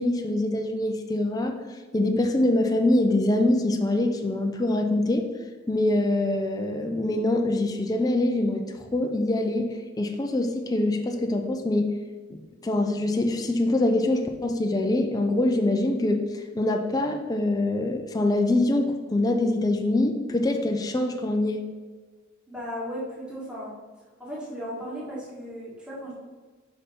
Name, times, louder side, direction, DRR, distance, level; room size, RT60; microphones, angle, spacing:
voice 1, 0.0-1.6 1.9-5.3 5.7-8.6 8.9-12.0 12.3-21.7, left 1 dB, 20° left, 3 dB, 0.4 m, -24 dB
voice 2, 22.5-23.7 24.2-26.1, equal, 5° right, -7 dB, 1.6 m, -36 dB
5.3 x 5.2 x 4.2 m, 1.4 s
head